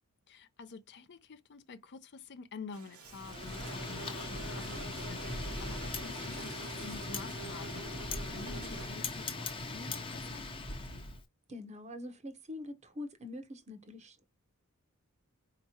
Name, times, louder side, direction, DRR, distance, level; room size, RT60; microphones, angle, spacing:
voice 1, 0.3-11.0, left 4 dB, 50° left, 0.6 m, -49 dB
sound 1, 2.7-8.9, right 3 dB, 70° right, 1.0 m, -47 dB
Wind, 3.1-11.2, left 2 dB, 25° left, 0.8 m, -40 dB
voice 2, 11.5-14.3, left 1 dB, 30° right, 0.8 m, -44 dB
4.5 x 2.9 x 2.7 m
head